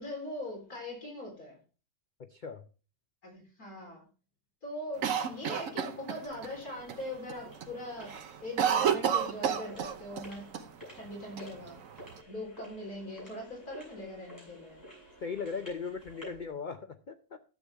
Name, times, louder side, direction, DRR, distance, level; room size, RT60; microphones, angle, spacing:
voice 1, 0.0-1.6 3.2-4.0 4.6-8.1 8.4-10.5 10.9-11.8 12.3-14.9, left 1 dB, 70° left, -1 dB, 4.5 m, -41 dB
voice 2, 2.2-2.6 15.2-17.4, left 5 dB, 55° left, 8 dB, 0.5 m, -38 dB
Cough, 5.0-6.5 6.9-7.0 7.3-7.7 8.0-10.3 10.5-10.6 11.4-12.2, right 8 dB, 65° right, 1.2 m, -30 dB
sound 1, 6.2-16.5, equal, 10° left, 6.3 m, -52 dB
12.0 x 8.0 x 3.4 m, 0.36 s
omnidirectional pair, 1.6 m